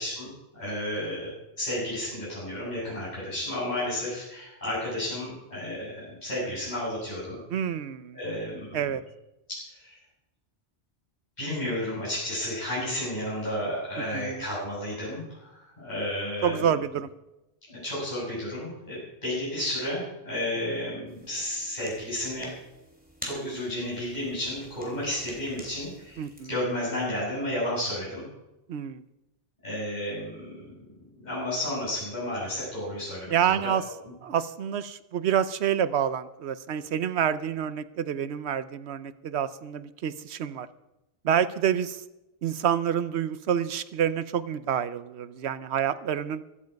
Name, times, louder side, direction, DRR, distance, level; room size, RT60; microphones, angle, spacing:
voice 1, 0.0-7.4 8.1-8.8 9.5-10.0 11.4-16.8 17.7-22.5 23.2-28.3 29.6-30.9 31.2-33.6, left 1 dB, 40° left, -9 dB, 7.8 m, -32 dB
voice 2, 7.5-8.2 8.7-9.0 14.1-14.5 16.4-17.1 20.7-20.8 26.2-26.5 28.7-29.0 33.3-33.8 34.2-40.7 41.2-42.0 42.4-46.4, right 9 dB, 75° right, 14 dB, 1.0 m, -28 dB
sound 1, 21.1-26.4, equal, 10° right, 3.3 m, -47 dB
15.5 x 13.0 x 5.2 m, 0.96 s
omnidirectional pair, 1.1 m